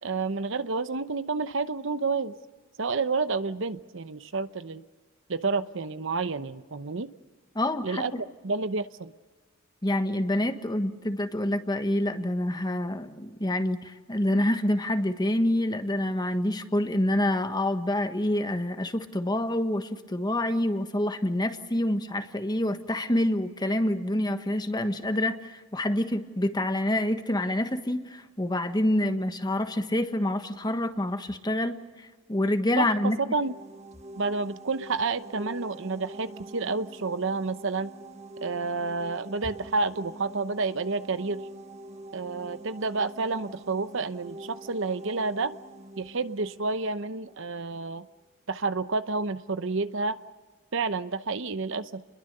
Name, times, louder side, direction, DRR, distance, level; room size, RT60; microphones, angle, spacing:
voice 1, 0.0-2.3 2.8-4.8 5.3-7.1 7.8-9.1 32.8-32.9 33.3-33.5 34.2-37.9 38.4-41.4 42.1-45.5 46.0-48.0 48.5-50.2 50.7-52.0, right 3 dB, 65° right, 12 dB, 0.9 m, -30 dB
voice 2, 7.5-8.0 9.8-33.2, left 1 dB, 20° left, 8 dB, 1.4 m, -27 dB
sound 1, 32.9-47.6, right 1 dB, 35° right, 1.3 m, -45 dB
29.5 x 22.0 x 6.7 m, 1.3 s
head